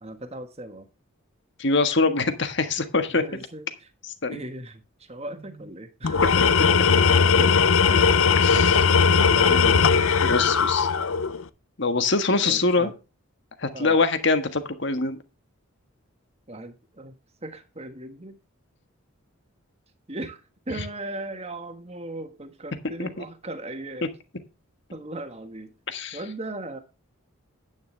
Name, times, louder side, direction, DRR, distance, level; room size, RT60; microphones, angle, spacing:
voice 1, 0.0-0.9 3.1-3.9 4.3-6.2 6.6-7.5 7.8-8.1 9.0-10.0 12.4-12.9 13.7-14.0 16.5-17.2 17.4-18.4 20.1-20.4 20.7-24.1 24.9-25.7 26.1-26.8, right 1 dB, 30° right, 1.5 m, -37 dB
voice 2, 1.6-3.2 4.2-4.4 6.4-6.5 8.4-8.9 10.2-10.9 11.8-12.9 13.6-15.2 20.8-20.9 23.0-23.1 25.9-26.2, left 3 dB, 55° left, 1.5 m, -24 dB
Tools, 6.0-11.4, left 5 dB, 75° left, 0.7 m, -19 dB
10.5 x 9.3 x 3.3 m
head